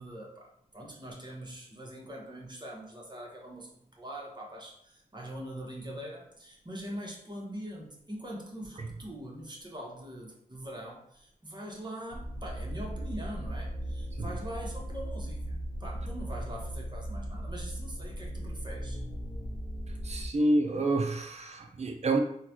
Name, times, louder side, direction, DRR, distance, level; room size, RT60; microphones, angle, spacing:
voice 1, 0.0-19.0, right 1 dB, 30° right, -2 dB, 1.1 m, -43 dB
sound 1, 12.1-20.3, equal, 40° left, 0.6 m, -37 dB
voice 2, 20.0-22.2, right 2 dB, 45° right, 3 dB, 0.6 m, -28 dB
3.8 x 2.2 x 2.9 m, 0.69 s
cardioid pair, 50°, 16 cm